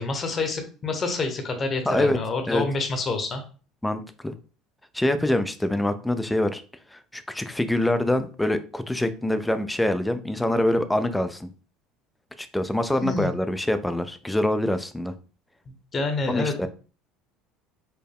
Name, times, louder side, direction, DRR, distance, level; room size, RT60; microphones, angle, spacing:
voice 1, 0.0-3.4 13.0-13.3 15.7-16.7, left 3 dB, 35° left, 5 dB, 0.9 m, -28 dB
voice 2, 1.9-2.2 2.5-2.6 3.8-4.3 4.9-6.6 6.9-11.5 12.4-15.1 16.3-16.7, left 1 dB, 5° left, 10 dB, 0.4 m, -25 dB
4.4 x 2.2 x 3.4 m, 0.37 s
supercardioid pair, 100°, 0 cm